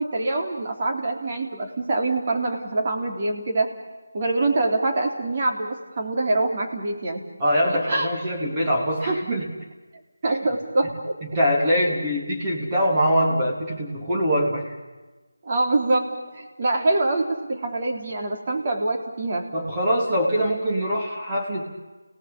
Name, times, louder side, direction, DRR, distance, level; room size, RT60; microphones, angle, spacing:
voice 1, 0.0-3.7 4.1-7.2 7.7-8.1 9.1-9.2 10.2-11.1 11.8-12.0 15.4-19.5, right 2 dB, 35° right, 1 dB, 3.6 m, -25 dB
voice 2, 7.4-9.5 10.2-10.4 11.3-14.7 19.5-21.7, equal, 20° right, -3 dB, 3.2 m, -23 dB
30.0 x 18.0 x 8.6 m, 1.2 s
figure-of-eight pair, 165°, 0 cm